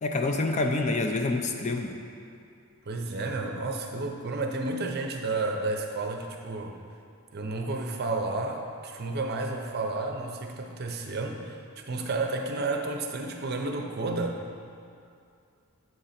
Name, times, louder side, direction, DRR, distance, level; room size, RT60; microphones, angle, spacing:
voice 1, 0.0-1.9, left 2 dB, 30° left, 4 dB, 0.4 m, -27 dB
voice 2, 2.9-6.8 7.3-14.4, right 3 dB, 45° right, 3 dB, 0.6 m, -31 dB
7.6 x 3.8 x 5.7 m, 2.4 s
head